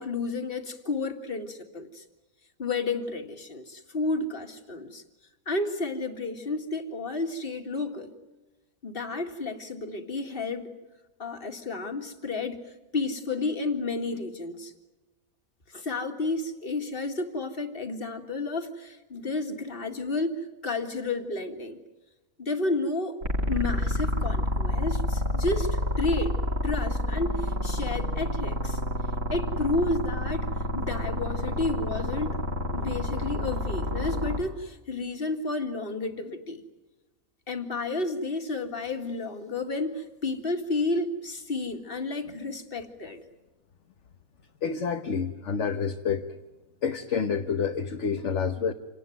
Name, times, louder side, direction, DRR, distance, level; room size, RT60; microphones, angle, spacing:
voice 1, 0.0-2.0 2.6-5.0 5.5-8.1 8.8-10.7 11.2-12.6 12.9-14.7 15.7-21.8 22.4-23.2 23.5-26.4 26.6-28.8 29.3-30.5 30.7-32.4 32.7-36.6 37.5-43.2, left 3 dB, 40° left, 5 dB, 2.3 m, -31 dB
sound 1, 23.2-34.4, left 2 dB, 65° right, 3.4 m, -28 dB
voice 2, 44.6-46.4 46.8-48.7, left 6 dB, 60° left, 5 dB, 1.4 m, -28 dB
27.5 x 19.0 x 9.4 m, 1.1 s
omnidirectional pair, 1.5 m